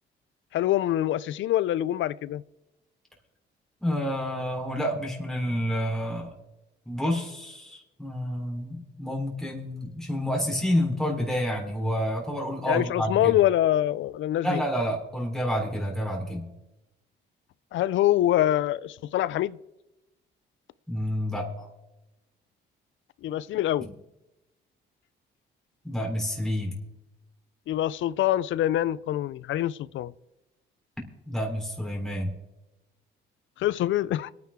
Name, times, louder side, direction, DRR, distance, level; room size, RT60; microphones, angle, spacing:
voice 1, 0.5-2.4 12.7-14.6 17.7-19.6 23.2-23.9 27.7-30.1 33.6-34.3, left 13 dB, 75° left, 0.5 m, -25 dB
voice 2, 3.8-6.3 6.9-13.3 14.4-16.5 20.9-21.7 23.8-23.9 25.8-26.7 31.3-32.3, equal, ahead, 3.9 m, -29 dB
25.5 x 9.5 x 3.7 m
cardioid pair, 90°, 20 cm